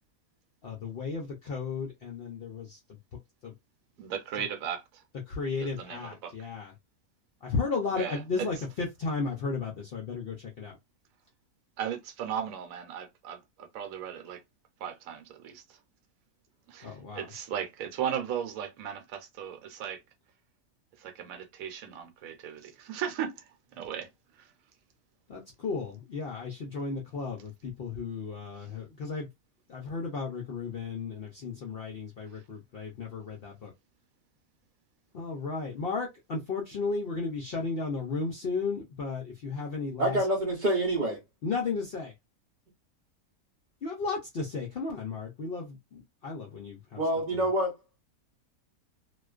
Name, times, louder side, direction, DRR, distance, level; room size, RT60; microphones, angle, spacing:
voice 1, 0.6-2.8 3.4-3.5 4.4-4.5 5.3-6.7 7.4-10.8 16.8-17.3 25.3-29.3 29.7-33.7 35.1-40.2 41.4-42.1 43.8-47.0, left 4 dB, 65° left, 0.6 m, -34 dB
voice 2, 4.0-5.0 5.6-6.3 7.9-8.5 11.8-14.4 14.8-15.8 16.7-20.0 21.0-23.4 23.7-24.1 24.4-24.5, right 9 dB, 70° right, 1.0 m, -36 dB
voice 3, 40.0-41.2 47.0-47.7, right 1 dB, 45° right, 0.6 m, -26 dB
2.4 x 2.2 x 2.3 m
omnidirectional pair, 1.6 m